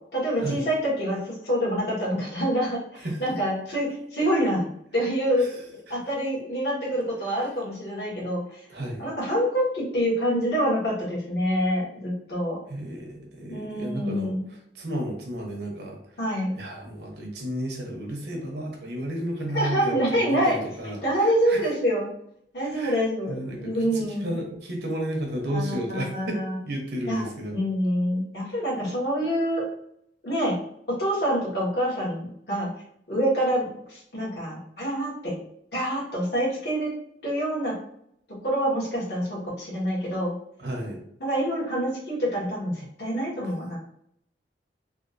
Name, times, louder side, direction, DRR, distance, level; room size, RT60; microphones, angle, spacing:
voice 1, 0.1-5.5 5.9-8.6 9.0-12.6 13.5-14.4 16.2-16.6 19.5-20.6 20.8-22.1 22.5-24.4 25.5-26.6 27.1-29.6 30.2-30.5 30.9-32.7 33.1-35.3 35.7-36.9 37.2-37.7 38.4-40.3 41.2-43.8, equal, 65° left, -6 dB, 1.5 m, -26 dB
voice 2, 8.7-9.1 12.7-16.1 16.6-21.7 22.6-23.0 23.3-27.6 40.6-41.0, equal, 65° right, 1 dB, 0.9 m, -33 dB
3.6 x 2.5 x 2.6 m, 0.71 s
head